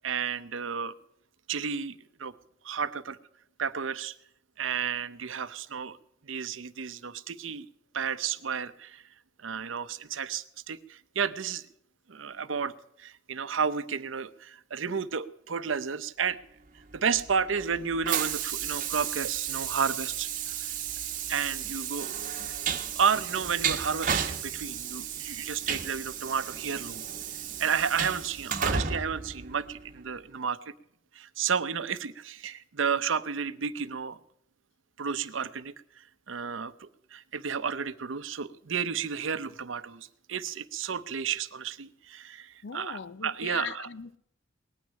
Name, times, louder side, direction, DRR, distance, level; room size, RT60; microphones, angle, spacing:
voice 1, 0.0-0.9 1.5-2.3 2.6-3.2 3.6-4.2 4.6-6.0 6.2-7.7 7.9-9.0 9.4-11.7 12.1-12.7 13.0-16.4 16.9-20.3 21.3-22.4 22.7-27.0 27.6-30.6 31.1-34.2 35.0-35.7 36.3-43.9, right 6 dB, 80° right, 0.7 m, -32 dB
Train, 16.9-30.1, right 7 dB, 45° right, 1.0 m, -33 dB
voice 2, 42.6-44.2, left 6 dB, 65° left, 0.6 m, -39 dB
19.0 x 6.4 x 9.9 m
head